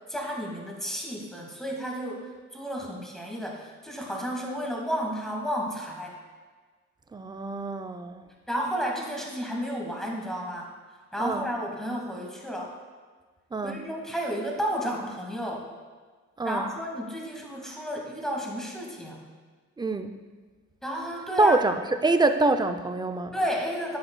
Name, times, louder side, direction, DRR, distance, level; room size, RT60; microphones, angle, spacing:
voice 1, 0.1-6.1 8.5-10.7 11.1-12.7 13.6-15.7 16.4-19.2 20.8-21.6 23.3-24.0, equal, ahead, -1 dB, 1.9 m, -32 dB
voice 2, 7.1-8.2 11.2-11.5 13.5-13.8 16.4-16.7 19.8-20.2 21.4-23.3, right 2 dB, 15° right, 8 dB, 0.5 m, -25 dB
10.5 x 7.6 x 2.3 m, 1.5 s
cardioid pair, 90°, 30 cm